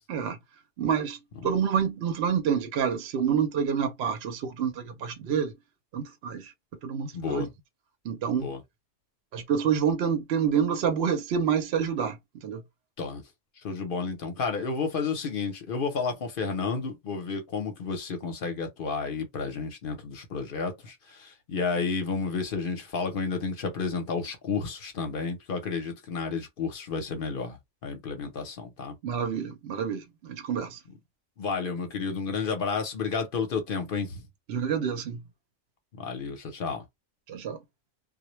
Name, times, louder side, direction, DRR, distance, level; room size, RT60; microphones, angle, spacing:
voice 1, 0.8-5.5 5.9-6.5 6.8-7.5 8.0-8.5 9.3-12.6 29.0-30.8 34.5-35.2 37.3-37.6, right 7 dB, 65° right, 0.7 m, -28 dB
voice 2, 7.1-7.5 8.4-8.6 13.0-13.2 13.6-27.6 27.8-29.0 31.4-34.2 36.0-36.8, left 5 dB, 55° left, 0.8 m, -31 dB
2.1 x 2.0 x 3.0 m
omnidirectional pair, 1.3 m